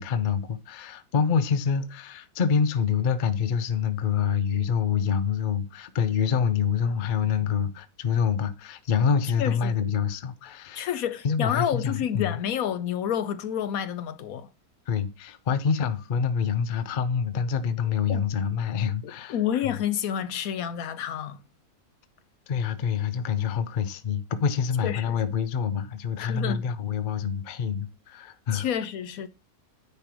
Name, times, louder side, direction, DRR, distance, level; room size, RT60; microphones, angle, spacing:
voice 1, 0.0-10.9 11.2-12.4 14.9-19.4 22.5-28.7, left 7 dB, 45° left, 0.7 m, -26 dB
voice 2, 9.4-9.8 10.7-14.5 18.1-18.2 19.3-21.4 24.8-25.1 26.2-26.6 28.5-29.3, left 9 dB, 70° left, 1.1 m, -29 dB
9.7 x 3.3 x 6.0 m
omnidirectional pair, 1.6 m